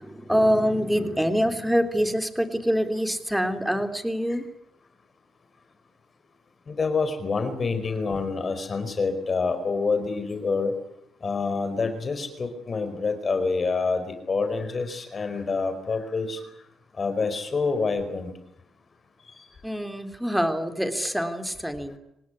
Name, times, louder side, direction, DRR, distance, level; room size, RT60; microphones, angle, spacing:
voice 1, 0.0-4.4 19.6-21.9, equal, 5° right, 7 dB, 3.2 m, -25 dB
voice 2, 6.7-10.7 11.2-16.4 17.0-18.3 19.2-19.4, left 4 dB, 35° left, 9 dB, 4.6 m, -27 dB
26.0 x 19.0 x 9.8 m, 0.80 s
cardioid pair, 90°, 0 cm